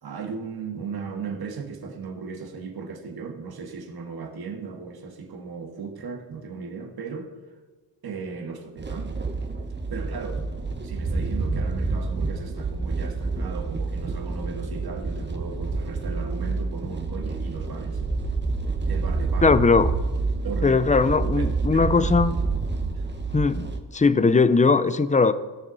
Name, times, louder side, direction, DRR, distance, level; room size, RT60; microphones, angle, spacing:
voice 1, 0.0-7.3 8.0-9.2 9.9-10.5 10.8-18.0 18.7-19.6 20.4-21.5 21.7-22.1 22.9-23.1, right 5 dB, 50° right, 1.8 m, -36 dB
sound 1, 8.8-23.8, right 3 dB, 20° right, 1.2 m, -28 dB
voice 2, 19.4-19.9 20.6-22.3 23.3-23.7 23.9-25.3, left 4 dB, 15° left, 0.5 m, -19 dB
17.5 x 6.6 x 4.0 m
cardioid pair, 75°, 47 cm